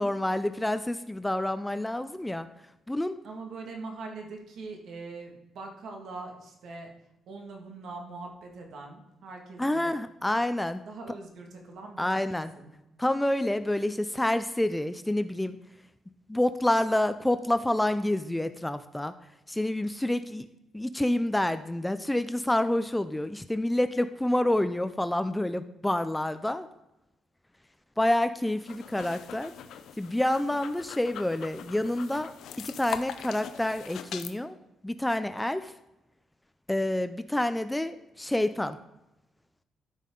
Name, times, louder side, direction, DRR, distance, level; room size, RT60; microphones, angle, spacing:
voice 1, 0.0-2.5 2.9-3.1 9.6-10.8 12.0-12.5 13.0-15.6 16.3-19.1 19.5-20.5 20.7-26.7 28.0-29.5 30.0-32.3 32.6-34.6 34.8-35.7 36.7-38.8, left 1 dB, 5° left, 11 dB, 0.3 m, -28 dB
voice 2, 3.2-6.9 7.3-9.9 10.9-12.0 12.4-12.7, right 3 dB, 65° right, 1 dB, 1.9 m, -42 dB
sound 1, 28.6-34.3, left 9 dB, 75° left, 0.5 m, -42 dB
13.0 x 5.5 x 3.8 m, 0.91 s
cardioid pair, 140°, 0 cm